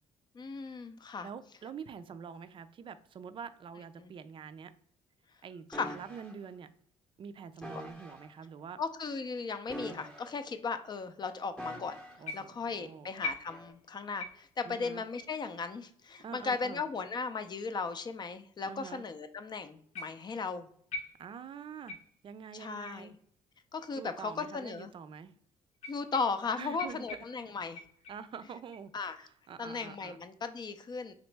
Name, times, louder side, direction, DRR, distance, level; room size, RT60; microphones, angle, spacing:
voice 1, 0.3-1.3 4.0-4.1 5.7-6.0 7.7-7.8 8.8-12.0 12.3-20.7 22.5-23.1 23.7-24.9 25.9-27.8 28.9-29.3 29.6-31.1, left 4 dB, 35° left, 0.5 m, -37 dB
voice 2, 1.2-4.7 5.4-6.7 7.2-8.8 12.2-13.1 14.7-15.1 16.2-16.8 18.6-19.1 21.2-23.1 23.9-25.3 26.5-27.1 28.1-28.9 29.2-30.2, right 6 dB, 40° right, 0.4 m, -46 dB
sound 1, 5.7-6.3 7.6-8.3 9.6-10.6 11.6-12.3 13.5-13.7, equal, 5° left, 0.8 m, -44 dB
sound 2, 12.3-12.7 13.2-13.9 14.2-14.6 15.2-15.4 16.1-16.2 17.1-17.2 18.1-18.2 19.9-20.4 20.9-21.5 21.9-22.3 22.8-23.0 23.8-23.9 24.8-24.9 25.7-26.5 26.8-28.3 28.7-29.2 29.7-30.0, left 3 dB, 80° left, 1.1 m, -44 dB
3.9 x 3.0 x 3.3 m
cardioid pair, 90°, 13 cm